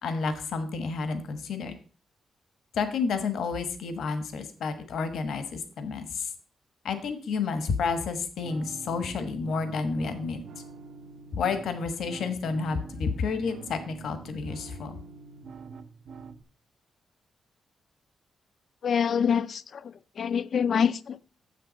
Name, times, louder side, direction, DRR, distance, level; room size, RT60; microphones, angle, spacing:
voice 1, 0.0-1.7 2.7-6.3 6.8-10.4 11.3-15.0, left 5 dB, 75° left, 1.2 m, -30 dB
sound 1, 8.4-16.4, right 5 dB, 70° right, 0.8 m, -45 dB
voice 2, 18.8-21.2, left 7 dB, 55° left, 0.4 m, -26 dB
7.7 x 6.7 x 5.2 m
wide cardioid pair, 145°, 0 cm